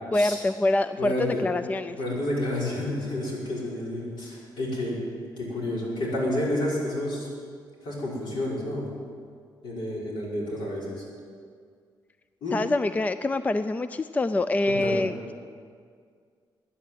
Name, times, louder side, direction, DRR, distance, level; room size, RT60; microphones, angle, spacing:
voice 1, 0.1-2.0 12.5-15.3, left 2 dB, 20° left, 12 dB, 0.4 m, -25 dB
voice 2, 1.0-1.4 2.0-5.0 5.4-7.3 7.8-8.9 9.6-11.0 12.4-12.6 14.7-15.0, left 1 dB, 70° left, -5 dB, 5.6 m, -30 dB
13.5 x 10.0 x 9.3 m, 2.1 s
cardioid pair, 115°, 8 cm